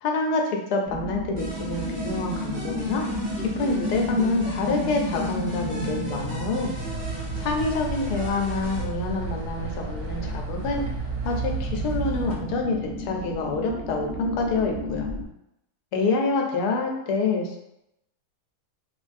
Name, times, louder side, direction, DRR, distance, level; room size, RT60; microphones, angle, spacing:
voice 1, 0.0-3.0 3.6-6.8 7.4-10.8 11.2-15.1 15.9-17.6, left 3 dB, 85° left, 2 dB, 1.2 m, -27 dB
sound 1, 0.8-15.2, left 1 dB, 20° right, 0.8 m, -32 dB
sound 2, 1.4-8.9, right 2 dB, 45° right, 0.5 m, -39 dB
sound 3, 6.9-12.3, right 4 dB, 65° right, 0.9 m, -33 dB
3.1 x 2.3 x 2.5 m, 0.82 s
omnidirectional pair, 1.7 m